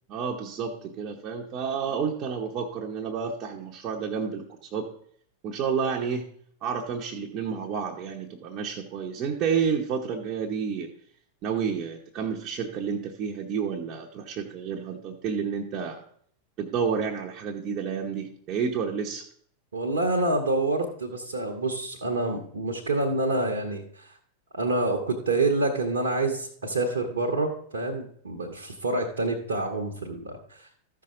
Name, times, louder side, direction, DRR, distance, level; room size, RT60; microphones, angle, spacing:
voice 1, 0.1-4.9 5.4-6.3 6.6-10.9 11.4-16.0 16.6-19.2, right 6 dB, 35° right, -1 dB, 1.0 m, -30 dB
voice 2, 19.7-24.1 24.5-30.7, right 2 dB, 70° right, 1 dB, 1.2 m, -27 dB
14.0 x 5.9 x 3.8 m, 0.62 s
figure-of-eight pair, 90°, 0 cm